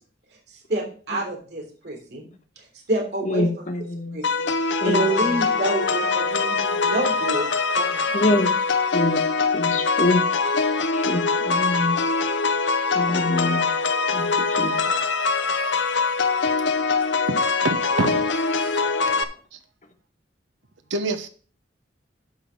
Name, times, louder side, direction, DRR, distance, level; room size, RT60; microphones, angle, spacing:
voice 1, 0.7-2.3 2.9-3.4 4.1-7.5 7.7-8.1, right 2 dB, 60° right, 3.2 m, -28 dB
voice 2, 3.2-4.2 4.8-5.4 8.1-8.7 8.9-9.2 9.5-10.2 10.9-12.0 12.9-13.7 14.1-14.7 19.1-19.2, left 1 dB, 40° left, 1.3 m, -25 dB
sound 1, 4.2-19.2, left 4 dB, 75° left, 0.7 m, -23 dB
voice 3, 17.6-18.8 19.5-19.6 20.9-21.3, right 2 dB, 90° right, 1.0 m, -27 dB
11.5 x 4.0 x 5.8 m
head